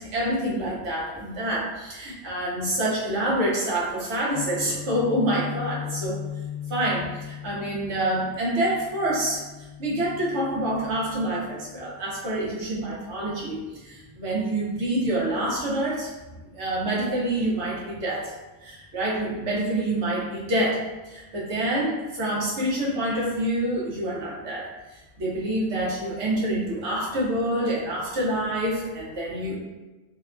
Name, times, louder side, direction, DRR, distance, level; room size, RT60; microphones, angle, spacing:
voice 1, 0.0-6.2 6.7-16.1 16.5-18.3 18.6-20.8 21.1-29.6, right 1 dB, 80° right, -5 dB, 1.1 m, -27 dB
Guitar, 4.3-12.2, left 9 dB, 75° left, 0.8 m, -38 dB
2.8 x 2.1 x 2.4 m, 1.1 s
omnidirectional pair, 1.1 m